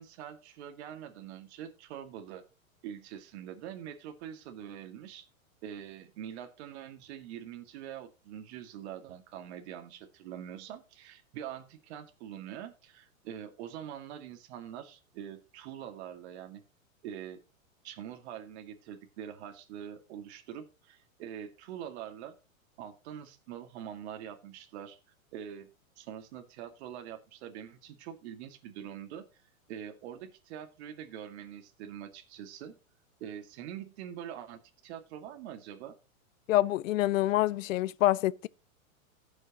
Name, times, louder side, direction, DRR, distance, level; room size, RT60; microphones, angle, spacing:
voice 1, 0.0-2.4 2.8-5.3 5.6-16.6 17.0-17.4 17.8-22.3 22.8-25.0 25.3-25.7 26.0-29.2 29.7-32.8 33.2-36.0, right 9 dB, 50° right, 2.1 m, -44 dB
voice 2, 36.5-38.5, left 15 dB, 70° left, 0.6 m, -26 dB
17.5 x 6.4 x 2.9 m
hypercardioid pair, 130°, 41 cm